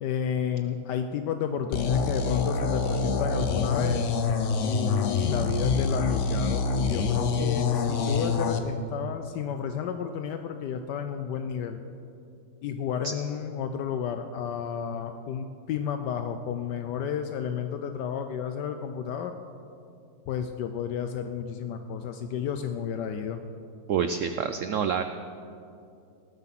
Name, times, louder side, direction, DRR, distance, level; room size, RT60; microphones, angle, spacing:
voice 1, 0.0-4.1 4.6-11.8 12.6-19.4 20.3-23.4, left 8 dB, 75° left, 7 dB, 1.2 m, -32 dB
sound 1, 1.7-8.6, left 4 dB, 55° left, 0.9 m, -26 dB
voice 2, 23.9-25.0, right 7 dB, 85° right, 9 dB, 0.6 m, -27 dB
19.0 x 7.7 x 5.9 m, 2.5 s
omnidirectional pair, 1.9 m